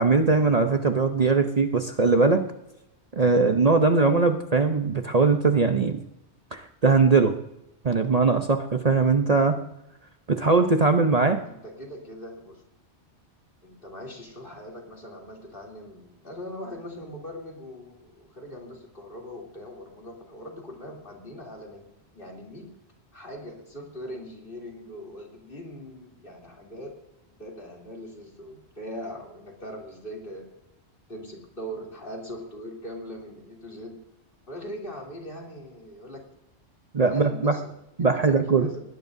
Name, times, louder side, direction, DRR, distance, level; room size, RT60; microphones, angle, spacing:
voice 1, 0.0-2.4 3.1-6.0 6.5-7.3 7.8-9.6 10.3-11.4 36.9-37.6 38.0-38.7, right 4 dB, 40° right, 5 dB, 0.8 m, -21 dB
voice 2, 11.3-12.6 13.6-21.9 22.1-22.7 23.1-27.0 27.4-30.5 31.1-34.0 34.5-36.2 37.1-37.7 38.0-38.8, equal, 50° left, -1 dB, 3.3 m, -41 dB
20.5 x 17.5 x 2.7 m, 0.88 s
omnidirectional pair, 1.1 m